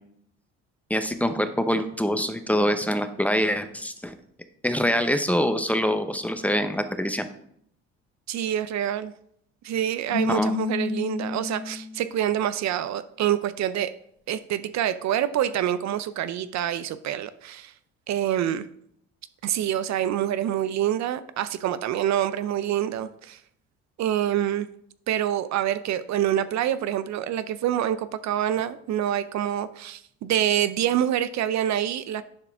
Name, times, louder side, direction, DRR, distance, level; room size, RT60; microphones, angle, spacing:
voice 1, 0.9-4.1 4.6-7.3 10.3-10.5, equal, 5° left, 9 dB, 0.7 m, -25 dB
voice 2, 8.3-9.1 9.6-13.9 14.3-17.7 18.1-18.7 19.4-23.4 24.0-24.7 25.1-32.2, right 11 dB, 60° right, 14 dB, 0.5 m, -26 dB
Keyboard (musical), 10.1-12.1, left 4 dB, 80° left, 1.7 m, -29 dB
10.5 x 4.7 x 3.5 m, 0.69 s
supercardioid pair, 80°, 31 cm